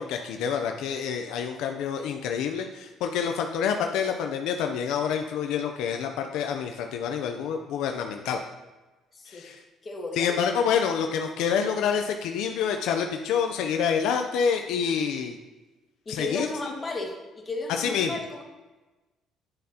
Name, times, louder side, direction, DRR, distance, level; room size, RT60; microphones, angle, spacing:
voice 1, 0.0-8.4 9.3-9.6 10.2-15.4 16.1-16.5 17.7-18.1, left 7 dB, 80° left, 4 dB, 0.5 m, -27 dB
voice 2, 9.1-9.6 9.8-10.9 16.0-18.4, left 3 dB, 25° left, 0 dB, 1.7 m, -35 dB
9.8 x 7.5 x 2.9 m, 1.2 s
cardioid pair, 120°, 0 cm